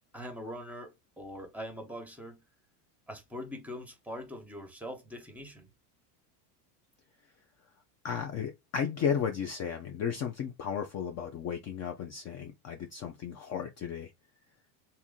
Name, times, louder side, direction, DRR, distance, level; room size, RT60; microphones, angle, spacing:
voice 1, 0.1-2.4 3.1-5.7, equal, 5° right, 1.1 m, -42 dB
voice 2, 8.0-14.1, left 7 dB, 35° left, 0.5 m, -34 dB
2.9 x 2.7 x 3.7 m
supercardioid pair, 120°, 49 cm